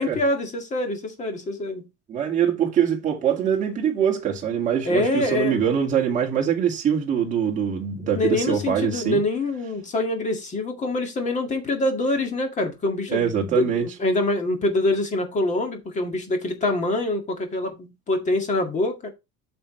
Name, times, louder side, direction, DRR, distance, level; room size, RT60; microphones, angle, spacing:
voice 1, 0.0-1.9 4.8-5.7 8.0-19.1, left 2 dB, 25° left, 1.9 m, -25 dB
voice 2, 2.1-9.2 13.1-13.8, right 8 dB, 25° right, 2.0 m, -23 dB
8.9 x 6.1 x 3.2 m
cardioid pair, 165°, 30 cm